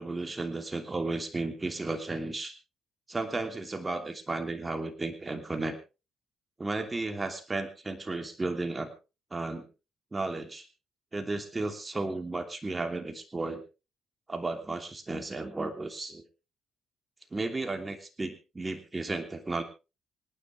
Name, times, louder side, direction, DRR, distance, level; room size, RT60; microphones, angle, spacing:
voice 1, 0.0-2.5 3.1-5.8 6.6-8.9 9.3-9.7 10.1-10.6 11.1-13.6 14.3-16.2 17.3-19.6, right 3 dB, 20° right, 5 dB, 2.9 m, -34 dB
27.0 x 9.7 x 3.3 m, 0.30 s
cardioid pair, 90°, 0 cm